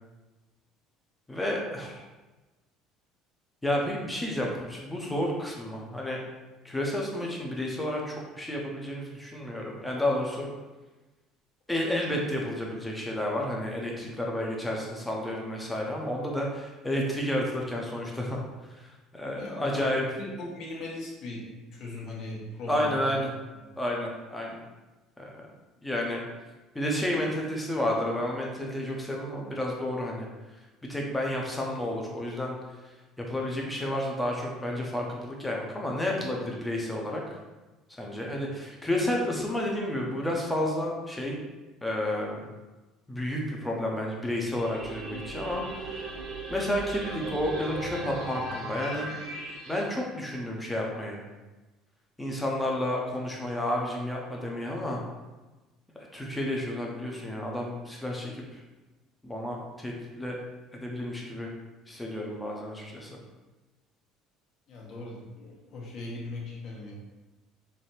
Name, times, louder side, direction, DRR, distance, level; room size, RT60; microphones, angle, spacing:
voice 1, 1.3-2.0 3.6-6.2 6.6-10.5 11.7-18.4 18.7-20.1 22.7-23.3 23.8-24.6 25.2-25.5 25.8-26.2 26.7-30.3 30.9-32.6 33.2-37.2 38.0-41.4 41.8-42.5 43.1-46.1 46.5-49.1 49.7-51.2 52.2-55.0 56.0-58.6 59.2-60.4 60.7-61.5 61.9-63.2, left 1 dB, 5° left, -1 dB, 0.7 m, -31 dB
voice 2, 19.3-23.2 64.7-66.9, left 2 dB, 50° left, -3 dB, 1.1 m, -39 dB
sound 1, 44.3-49.9, right 2 dB, 50° right, 0.8 m, -37 dB
3.3 x 2.7 x 4.2 m, 1.2 s
cardioid pair, 150°, 0 cm